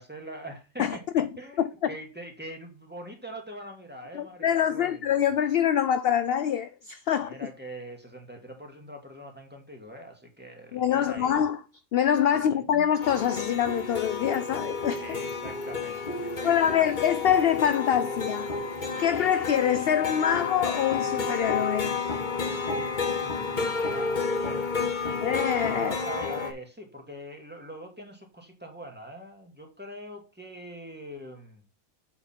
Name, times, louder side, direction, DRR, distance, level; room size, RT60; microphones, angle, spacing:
voice 1, 0.0-5.0 7.1-11.4 12.3-12.9 14.9-16.9 23.2-24.7 25.8-31.7, equal, 5° right, 2.0 m, -43 dB
voice 2, 0.8-1.3 1.6-1.9 4.1-7.3 10.7-11.6 11.9-15.0 16.4-18.5 19.0-21.9 25.2-25.9, left 9 dB, 60° left, 0.6 m, -25 dB
sound 1, 13.0-26.5, left 4 dB, 35° left, 1.2 m, -31 dB
7.9 x 5.5 x 4.4 m
omnidirectional pair, 1.4 m